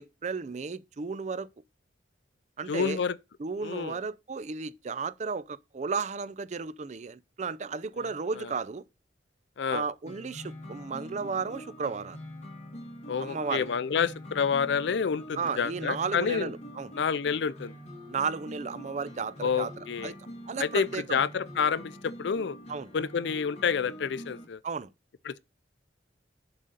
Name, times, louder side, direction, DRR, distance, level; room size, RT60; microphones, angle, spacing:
voice 1, 0.0-1.5 2.6-3.0 3.4-8.8 9.7-12.2 13.2-13.7 15.4-16.9 18.1-19.7 20.0-20.1 20.5-21.2 22.7-22.9 24.6-24.9, right 5 dB, 40° right, 0.4 m, -34 dB
voice 2, 2.7-3.2 3.6-4.0 8.4-8.5 9.6-9.8 13.1-16.5 16.9-17.7 19.4-20.1 20.6-22.6 22.9-24.6 25.2-25.4, left 6 dB, 70° left, 0.4 m, -29 dB
sound 1, 10.1-24.5, equal, 35° left, 1.9 m, -45 dB
7.4 x 4.0 x 6.6 m
head